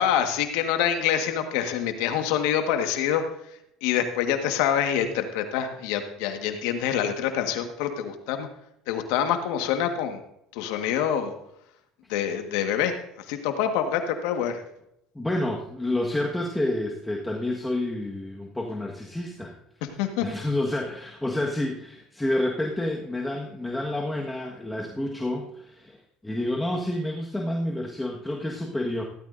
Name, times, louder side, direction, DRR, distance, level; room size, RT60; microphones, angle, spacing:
voice 1, 0.0-3.2 3.8-8.5 8.9-10.2 10.5-11.3 12.1-12.9 13.3-14.6 20.0-20.2, left 9 dB, 80° left, 6 dB, 1.6 m, -26 dB
voice 2, 15.1-19.5 20.2-26.0 26.2-29.0, left 1 dB, 10° left, -1 dB, 1.5 m, -29 dB
16.0 x 13.5 x 2.7 m, 0.79 s
supercardioid pair, 95°, 0 cm